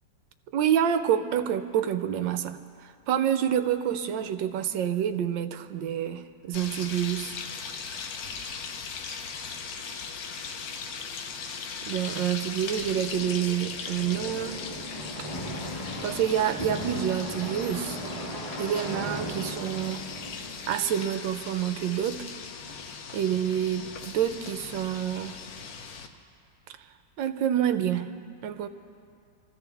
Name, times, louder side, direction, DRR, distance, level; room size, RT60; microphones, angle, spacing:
voice 1, 0.5-7.3 11.9-14.6 16.0-18.0 18.6-20.0 20.7-22.2 23.1-25.4 27.2-28.2 28.4-28.7, right 10 dB, 70° right, 9 dB, 1.3 m, -28 dB
sound 1, 6.5-26.1, left 5 dB, 60° left, 1.1 m, -39 dB
sound 2, 12.7-21.5, equal, 20° left, 1.7 m, -38 dB
26.0 x 15.0 x 3.4 m, 2.3 s
omnidirectional pair, 2.2 m